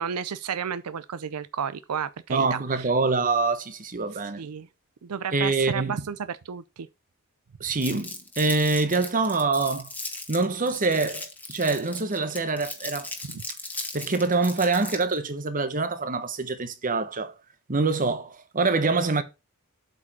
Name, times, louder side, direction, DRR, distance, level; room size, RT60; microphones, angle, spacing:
voice 1, 0.0-2.9 4.4-4.7 5.0-6.9 13.2-13.4, right 7 dB, 90° right, 0.5 m, -32 dB
voice 2, 2.3-4.4 5.3-6.0 7.6-9.9 10.3-13.1 13.9-17.3 17.7-19.2, right 3 dB, 35° right, 1.1 m, -25 dB
Crumpling crinkling, 7.8-15.2, left 2 dB, 10° left, 1.4 m, -37 dB
8.2 x 5.0 x 4.2 m
head